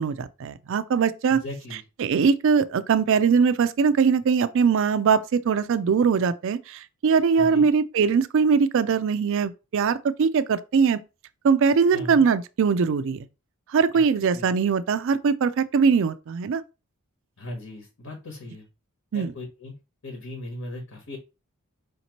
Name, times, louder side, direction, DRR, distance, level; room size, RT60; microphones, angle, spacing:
voice 1, 0.0-1.4 2.0-11.0 11.4-13.3 13.7-16.6 19.1-19.3, right 6 dB, 60° right, 0.4 m, -21 dB
voice 2, 1.3-1.8 7.4-7.7 11.9-12.2 13.9-14.0 14.3-14.5 17.4-18.7 19.1-19.7 20.0-21.2, left 1 dB, 65° left, 1.2 m, -37 dB
5.1 x 2.8 x 2.9 m
head